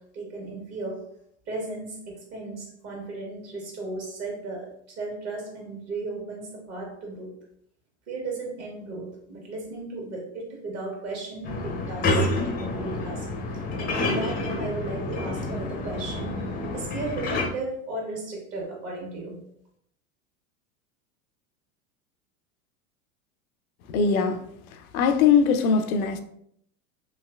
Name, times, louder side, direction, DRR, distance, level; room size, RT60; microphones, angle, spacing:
voice 1, 0.1-1.0 1.4-7.3 8.1-13.3 13.8-16.5 16.7-19.4, right 2 dB, 35° right, 1.2 m, -35 dB
sound 1, 11.4-17.5, left 2 dB, 20° left, 0.5 m, -28 dB
voice 2, 23.9-24.4 24.9-26.2, left 6 dB, 80° left, 0.5 m, -21 dB
3.1 x 2.9 x 2.3 m
hypercardioid pair, 90°, 42 cm